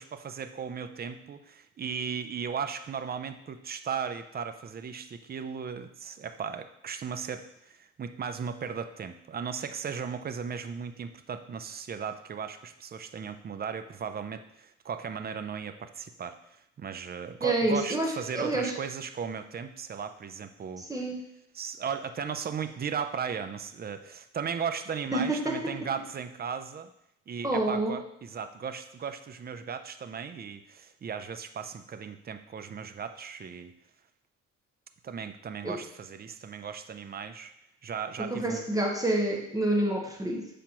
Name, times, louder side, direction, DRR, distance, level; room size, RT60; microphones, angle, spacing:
voice 1, 0.0-16.4 16.8-20.9 21.5-26.9 27.3-33.7 35.0-37.5 37.8-38.6, right 6 dB, 30° right, 10 dB, 0.5 m, -36 dB
voice 2, 17.4-18.7 20.8-21.2 25.1-25.8 27.4-28.0 35.6-35.8 38.2-40.5, right 1 dB, 10° right, 1 dB, 1.1 m, -28 dB
7.3 x 5.0 x 3.0 m, 0.77 s
cardioid pair, 90°, 30 cm